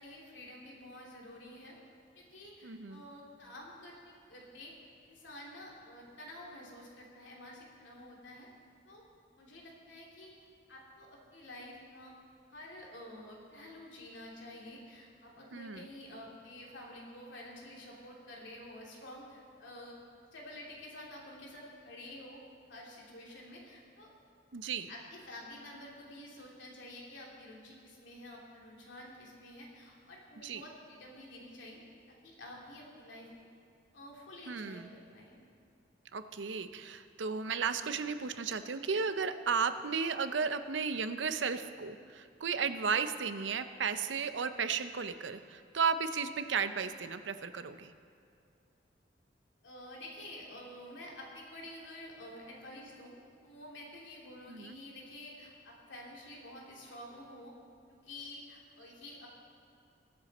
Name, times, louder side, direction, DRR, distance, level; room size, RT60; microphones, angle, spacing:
voice 1, 0.0-1.7 2.1-4.7 5.0-8.5 8.8-9.0 9.4-10.3 10.7-12.1 12.5-20.0 20.3-22.4 22.7-24.1 24.9-31.8 32.2-33.3 33.9-35.4 49.6-53.2 53.4-57.5 57.9-59.3, left 1 dB, 90° left, -3 dB, 2.9 m, -49 dB
voice 2, 2.6-3.0 15.5-15.9 24.5-24.9 30.4-30.6 34.5-34.9 36.1-47.9 54.5-54.8, right 5 dB, 85° right, 11 dB, 0.6 m, -34 dB
22.0 x 8.0 x 4.2 m, 2.5 s
head